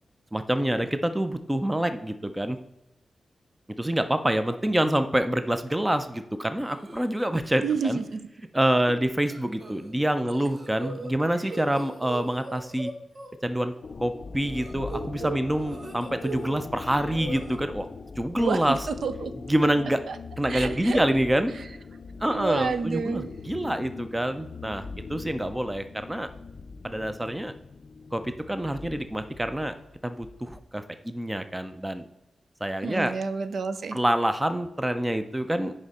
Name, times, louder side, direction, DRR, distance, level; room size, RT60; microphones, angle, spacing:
voice 1, 0.3-2.6 3.8-8.0 8.5-12.9 13.4-13.7 14.0-17.9 18.2-18.9 19.5-20.0 20.4-21.7 22.2-26.3 26.8-27.5 28.1-29.7 30.0-32.0 32.6-33.1 33.9-35.7, right 1 dB, 10° right, 9 dB, 0.5 m, -26 dB
sound 1, 6.6-7.0 7.4-7.8 8.0-8.1 9.3-9.9 10.3-13.3 14.4-16.5 16.8-17.6, right 3 dB, 35° right, 1.3 m, -39 dB
voice 2, 7.6-8.2 18.4-19.3 20.1-20.2 20.5-21.0 22.3-23.3 32.8-34.0, right 5 dB, 65° right, 10 dB, 0.6 m, -29 dB
sound 2, 13.8-30.6, left 4 dB, 45° left, 0.5 m, -41 dB
9.8 x 5.0 x 4.2 m, 0.91 s
wide cardioid pair, 160°, 0 cm